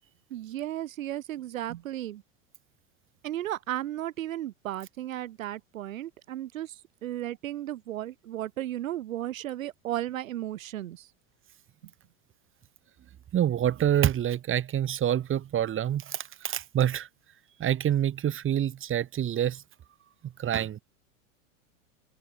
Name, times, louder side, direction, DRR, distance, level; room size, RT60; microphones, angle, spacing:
voice 1, 0.3-2.2 3.2-11.1, right 13 dB, 75° right, 3.6 m, -35 dB
voice 2, 13.3-17.1 17.6-19.6 20.2-20.8, right 10 dB, 30° right, 5.3 m, -27 dB
hypercardioid pair, 110°, 40 cm